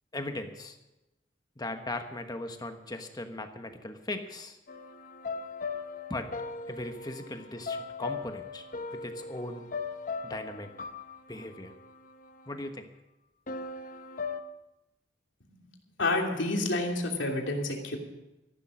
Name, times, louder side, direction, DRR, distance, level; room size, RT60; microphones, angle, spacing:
voice 1, 0.1-0.8 1.6-4.6 6.1-6.3 6.7-8.6 8.9-9.7 10.2-10.7 11.3-11.7 12.5-12.9, left 2 dB, 20° left, 6 dB, 1.2 m, -38 dB
sound 1, 4.7-12.7 13.5-14.4, left 4 dB, 45° left, 0.8 m, -39 dB
voice 2, 16.0-18.0, left 2 dB, 90° left, 1 dB, 2.8 m, -29 dB
14.5 x 11.5 x 6.3 m, 0.98 s
head